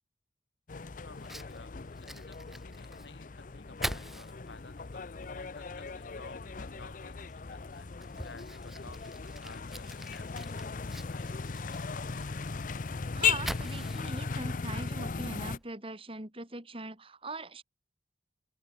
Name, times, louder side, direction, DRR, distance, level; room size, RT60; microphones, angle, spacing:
sound 1, 0.7-15.6, left 6 dB, 45° left, 0.6 m, -37 dB
voice 1, 1.0-1.7 2.0-5.0 5.4-7.9 8.2-12.3, left 3 dB, 85° left, 7.2 m, -54 dB
Fire, 1.1-15.7, equal, ahead, 1.7 m, -46 dB
voice 2, 13.1-17.6, right 2 dB, 30° right, 4.0 m, -41 dB
open air
head